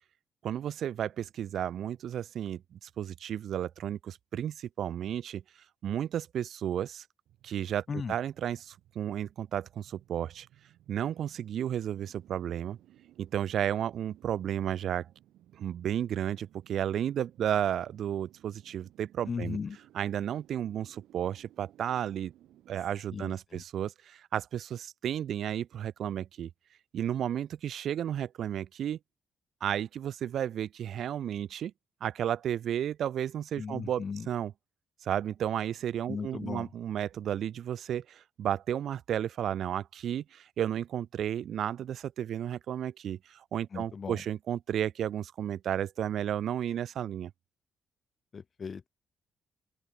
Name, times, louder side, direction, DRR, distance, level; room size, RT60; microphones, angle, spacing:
voice 1, 0.4-5.4 5.8-7.0 7.4-10.5 10.9-12.8 13.2-15.1 15.6-19.6 19.9-22.3 22.7-26.5 26.9-29.0 29.6-31.7 32.0-34.5 35.0-47.3, right 10 dB, 65° right, 0.6 m, -33 dB
sound 1, 7.3-22.9, right 13 dB, 80° right, 3.9 m, -61 dB
voice 2, 19.3-19.8 23.1-23.6 33.6-34.3 36.1-36.7 43.7-44.2 48.3-48.9, left 5 dB, 40° left, 0.5 m, -37 dB
open air
cardioid pair, 90°, 0 cm